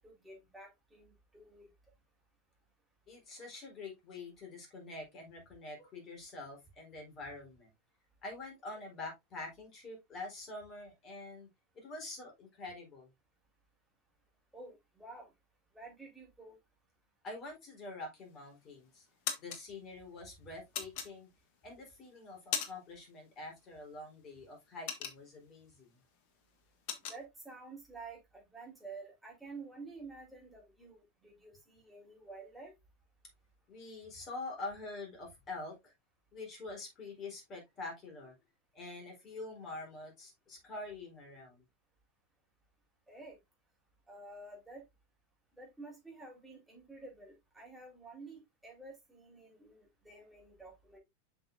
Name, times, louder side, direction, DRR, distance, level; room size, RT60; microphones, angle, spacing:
voice 1, 0.0-1.7 14.5-15.3 15.7-16.6 27.1-32.7 43.1-43.4 44.1-44.8 45.5-51.0, right 3 dB, 5° right, 4.3 m, -50 dB
voice 2, 3.1-7.7 8.2-11.5 11.7-13.1 17.2-19.1 19.4-21.3 21.6-26.0 33.7-35.9 36.3-38.3 38.7-41.6, left 2 dB, 30° left, 4.3 m, -46 dB
sound 1, 18.2-18.6 19.0-19.6 20.7-21.6 22.1-23.0 23.3-23.5 23.9-25.6 26.0-26.2 26.4-27.2, left 7 dB, 45° left, 1.4 m, -38 dB
7.9 x 6.1 x 2.6 m
figure-of-eight pair, 90°, 0 cm